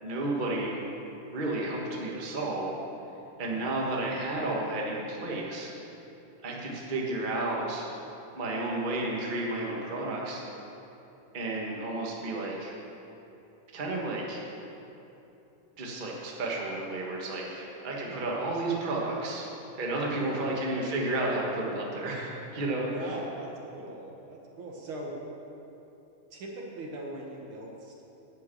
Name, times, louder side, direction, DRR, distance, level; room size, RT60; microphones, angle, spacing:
voice 1, 0.0-0.8 1.3-2.7 3.4-5.7 6.4-7.9 8.3-10.4 11.3-12.7 13.7-14.5 15.8-19.5 19.7-22.9, right 2 dB, 85° right, -3 dB, 0.4 m, -32 dB
voice 2, 3.5-3.9 18.0-18.3 20.1-20.6 22.8-25.2 26.3-28.0, right 1 dB, 60° right, -1 dB, 1.5 m, -41 dB
12.0 x 5.3 x 8.6 m, 2.9 s
omnidirectional pair, 3.6 m